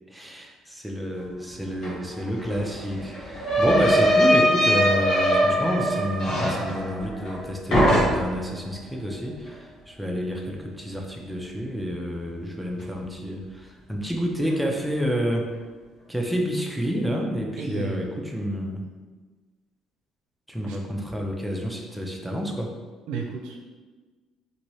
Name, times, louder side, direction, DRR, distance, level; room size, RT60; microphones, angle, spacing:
voice 1, 0.1-15.5 16.1-18.9 20.5-22.7, equal, ahead, 0 dB, 0.5 m, -29 dB
sound 1, 1.8-1.9 2.2-7.4 7.7-8.5, equal, 65° left, 1.2 m, -22 dB
voice 2, 17.6-18.2 20.6-20.8 23.1-23.8, right 4 dB, 85° right, 2 dB, 0.4 m, -33 dB
2.8 x 2.6 x 3.0 m, 1.3 s
cardioid pair, 105°, 0 cm